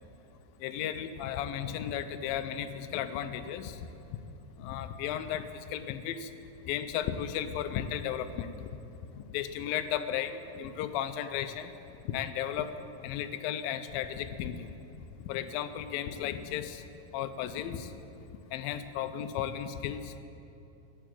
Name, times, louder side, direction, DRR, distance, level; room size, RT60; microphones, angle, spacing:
voice 1, 0.6-3.8 4.6-6.3 6.7-8.7 9.1-11.7 12.1-12.7 13.0-14.7 15.3-16.8 17.1-17.9 18.5-20.2, left 10 dB, 90° left, 10 dB, 2.4 m, -34 dB
16.5 x 7.1 x 8.7 m, 2.8 s
omnidirectional pair, 4.0 m